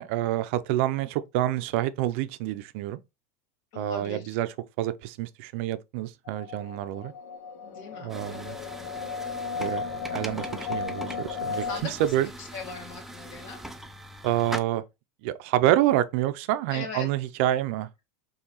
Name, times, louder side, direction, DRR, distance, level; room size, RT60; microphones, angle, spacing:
voice 1, 0.0-3.0 3.8-7.1 8.0-8.6 9.6-12.3 14.2-14.8 15.2-17.9, right 13 dB, 65° right, 0.5 m, -27 dB
voice 2, 3.7-4.2 7.6-8.1 11.6-12.1 12.4-13.6 16.7-17.1, left 4 dB, 55° left, 2.0 m, -39 dB
sound 1, 6.3-11.8, left 5 dB, 70° left, 0.7 m, -35 dB
sound 2, 8.1-14.6, right 1 dB, 5° right, 0.4 m, -41 dB
4.5 x 3.1 x 2.9 m
supercardioid pair, 145°, 8 cm